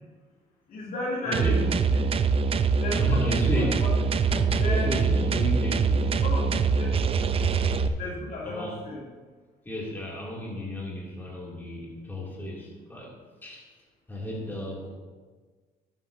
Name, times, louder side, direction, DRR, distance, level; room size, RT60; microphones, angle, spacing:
voice 1, 0.7-2.0 2.8-3.9 4.3-5.3 6.0-7.0 8.0-9.1, left 2 dB, 60° left, -3 dB, 2.7 m, -34 dB
voice 2, 1.2-1.6 2.4-2.6 2.9-3.8 4.6-6.1 8.4-8.8 9.6-13.1 13.4-13.7 14.1-14.9, equal, 10° left, -4 dB, 2.6 m, -33 dB
sound 1, 1.3-7.9, right 5 dB, 35° right, 0.5 m, -24 dB
12.0 x 8.8 x 2.7 m, 1.4 s
cardioid pair, 110°, 17 cm